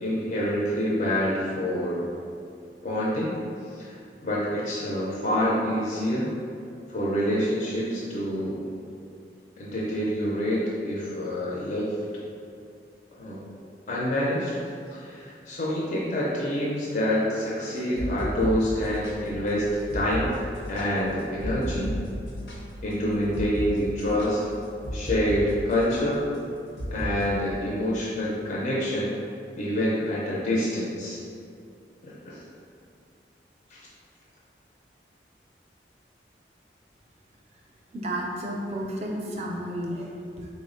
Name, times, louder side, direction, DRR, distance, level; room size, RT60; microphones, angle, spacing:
voice 1, 0.0-2.0 2.8-3.4 3.8-3.9 4.2-6.3 6.9-8.7 9.6-12.0 13.2-13.4 13.9-14.6 14.9-20.4 20.7-22.0 22.8-24.4 24.9-26.2 26.9-29.2 29.6-31.2 32.0-32.4 33.7-33.8, equal, 45° left, -6 dB, 0.4 m, -27 dB
sound 1, 17.8-25.4 25.7-26.0 26.8-27.2, equal, 85° left, 0.7 m, -34 dB
voice 2, 37.9-40.5, right 1 dB, 35° right, -1 dB, 0.4 m, -32 dB
3.5 x 2.0 x 3.7 m, 2.5 s
head